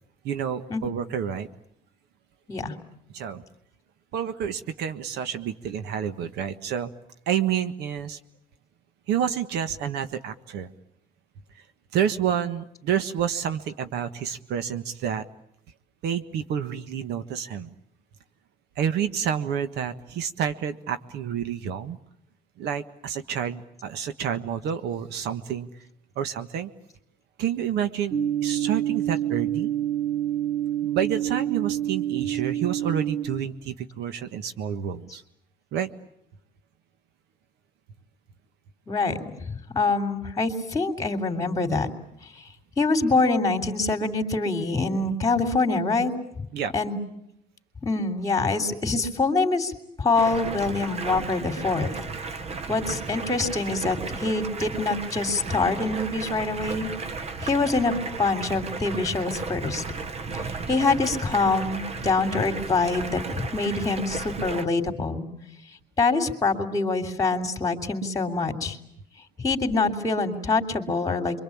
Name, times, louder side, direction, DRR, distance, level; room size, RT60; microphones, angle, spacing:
voice 1, 0.2-1.5 3.1-3.4 4.1-6.9 7.3-8.2 9.1-10.7 11.9-15.2 16.0-17.7 18.8-22.0 22.6-25.7 26.1-26.7 27.4-29.7 30.8-35.2 35.7-35.9 46.5-46.7, right 8 dB, 80° right, 11 dB, 1.6 m, -29 dB
sound 1, 28.1-33.2, right 11 dB, 55° right, 3.5 m, -27 dB
voice 2, 38.9-39.2 39.7-41.9 42.8-46.1 46.7-47.0 47.8-49.7 50.0-51.9 52.7-56.9 57.4-59.8 60.7-65.3 66.0-68.8 69.4-71.4, left 3 dB, 20° left, 8 dB, 3.3 m, -25 dB
Stream, 50.1-64.6, right 4 dB, 40° right, 1.3 m, -34 dB
27.5 x 24.0 x 8.7 m, 0.76 s
cardioid pair, 110°, 17 cm